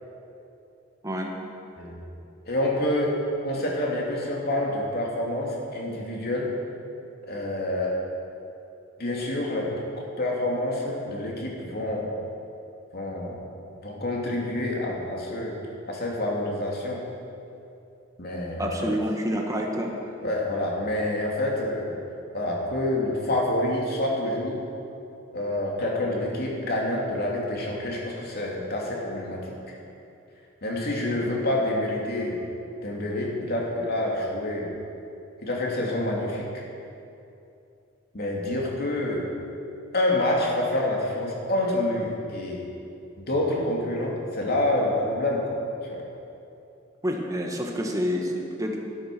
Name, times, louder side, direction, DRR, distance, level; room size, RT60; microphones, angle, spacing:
voice 1, 2.5-6.5 7.3-8.0 9.0-12.1 12.9-13.4 13.8-15.6 15.9-17.0 18.2-18.7 20.2-21.9 22.3-24.6 25.3-29.4 29.7-29.8 30.6-32.4 32.8-34.7 35.4-36.6 38.1-39.3 39.9-42.6 43.2-45.5 45.8-46.0, left 1 dB, 50° left, -2 dB, 2.7 m, -27 dB
voice 2, 18.6-20.1 47.0-48.8, equal, 15° right, 0 dB, 1.6 m, -28 dB
12.5 x 12.5 x 6.2 m, 2.7 s
head